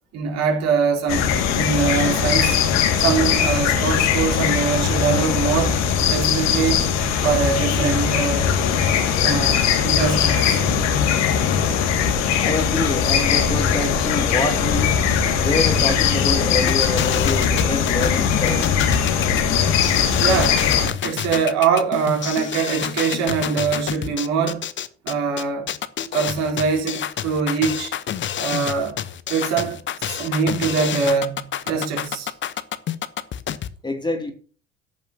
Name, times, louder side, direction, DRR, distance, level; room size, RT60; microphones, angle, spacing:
voice 1, 0.1-2.6 3.0-5.8 6.1-6.9 7.2-8.6 9.2-10.6 20.2-20.7 21.0-24.6 25.0-25.7 26.1-28.0 28.4-29.0 29.3-32.3, right 6 dB, 55° right, 4.2 m, -23 dB
sound 1, 1.1-20.9, left 7 dB, 55° left, 2.4 m, -20 dB
voice 2, 12.4-15.0 15.4-18.8 33.8-34.3, left 2 dB, 15° left, 2.8 m, -26 dB
sound 2, 16.7-33.7, left 10 dB, 35° left, 1.1 m, -28 dB
14.0 x 10.5 x 2.9 m
figure-of-eight pair, 60°, 32 cm